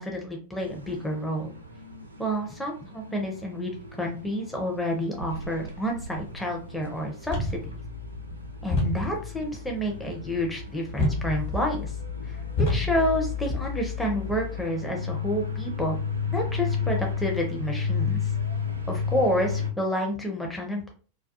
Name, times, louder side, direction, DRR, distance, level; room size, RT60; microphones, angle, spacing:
voice 1, 0.0-1.5 2.2-3.7 4.0-7.7 8.6-12.0 12.2-12.4 12.7-16.0 16.3-18.3 18.9-20.9, equal, 5° left, 0 dB, 0.5 m, -29 dB
sound 1, 0.6-19.7, left 5 dB, 85° right, 0.4 m, -34 dB
sound 2, 7.2-14.6, left 3 dB, 55° left, 1.0 m, -31 dB
2.2 x 2.2 x 2.7 m, 0.40 s
figure-of-eight pair, 90°, 0 cm